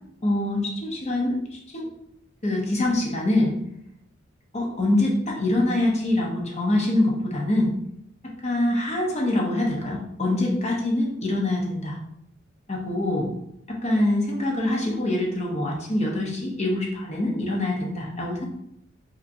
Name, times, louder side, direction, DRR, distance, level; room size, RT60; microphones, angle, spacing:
voice 1, 0.2-1.9 2.4-3.5 4.5-7.7 8.2-12.0 12.7-13.3 13.7-18.5, left 1 dB, 35° left, -1 dB, 0.9 m, -24 dB
5.2 x 2.9 x 2.7 m, 0.77 s
head